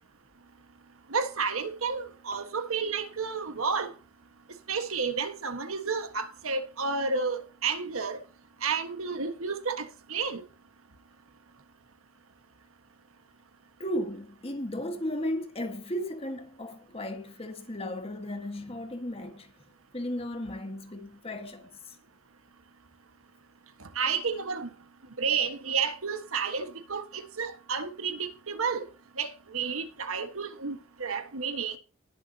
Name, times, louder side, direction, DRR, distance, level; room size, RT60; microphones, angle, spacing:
voice 1, 1.1-3.9 4.7-8.2 8.6-10.4 23.9-24.7 25.2-28.8 29.2-31.8, right 5 dB, 85° right, 1.5 m, -31 dB
voice 2, 13.8-19.5 19.9-22.0, left 1 dB, 25° left, 1.5 m, -35 dB
19.5 x 7.1 x 2.8 m
head